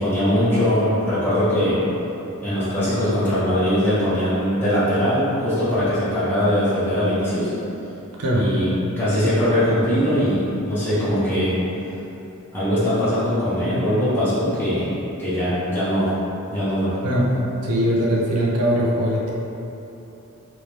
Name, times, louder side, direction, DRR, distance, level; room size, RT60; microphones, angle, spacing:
voice 1, 0.0-1.8 2.4-7.5 8.3-8.7 9.0-11.5 12.5-14.9 15.2-16.1 16.5-16.9, equal, 10° left, -13 dB, 0.8 m, -21 dB
voice 2, 8.2-8.5 17.0-19.3, equal, 90° right, -4 dB, 0.7 m, -21 dB
3.1 x 3.1 x 3.3 m, 3.0 s
head